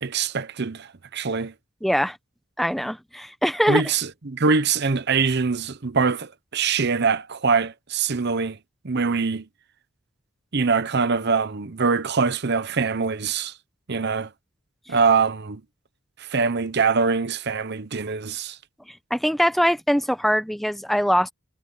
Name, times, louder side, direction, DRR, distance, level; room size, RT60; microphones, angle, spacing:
voice 1, 0.0-1.5 3.7-8.6 8.8-9.4 10.5-13.5 13.9-14.3 14.9-15.6 16.3-18.6, right 5 dB, 55° right, 0.9 m, -23 dB
voice 2, 1.8-2.2 2.6-3.8 18.9-21.3, equal, ahead, 0.8 m, -22 dB
head